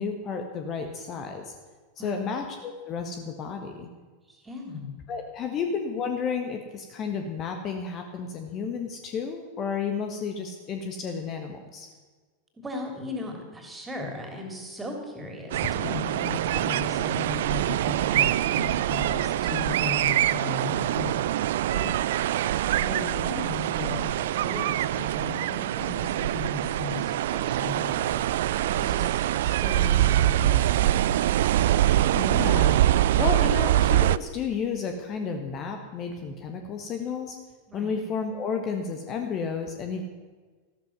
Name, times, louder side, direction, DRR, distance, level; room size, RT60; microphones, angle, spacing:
voice 1, 0.0-1.5 2.0-3.9 5.1-11.9 32.1-32.8 33.2-37.4 37.7-40.0, left 5 dB, 30° left, 4 dB, 1.4 m, -32 dB
voice 2, 2.0-2.3 4.3-4.9 5.5-5.6 12.6-22.0 22.3-22.5 22.7-31.8 37.7-38.0, left 3 dB, 10° right, 2 dB, 3.3 m, -37 dB
sound 1, 15.5-34.2, right 13 dB, 55° right, 0.4 m, -24 dB
13.5 x 13.0 x 6.1 m, 1.4 s
figure-of-eight pair, 90°, 0 cm